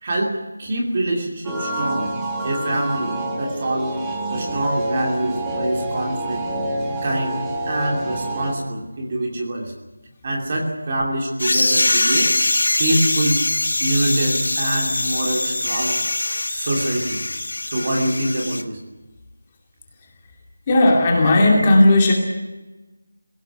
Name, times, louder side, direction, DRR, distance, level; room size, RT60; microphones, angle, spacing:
voice 1, 0.0-2.1 2.4-4.0 4.3-6.5 7.0-7.4 7.7-9.7 10.2-12.3 12.8-13.4 13.8-16.0 16.5-17.2 17.7-18.8, right 1 dB, 25° right, 0 dB, 2.8 m, -24 dB
sound 1, 1.4-8.5, right 1 dB, 5° right, 1.4 m, -27 dB
sound 2, 11.4-18.6, left 2 dB, 65° left, 1.6 m, -22 dB
voice 2, 20.7-22.1, left 1 dB, 15° left, 0 dB, 2.6 m, -14 dB
21.5 x 17.0 x 10.0 m, 1.1 s
figure-of-eight pair, 175°, 0 cm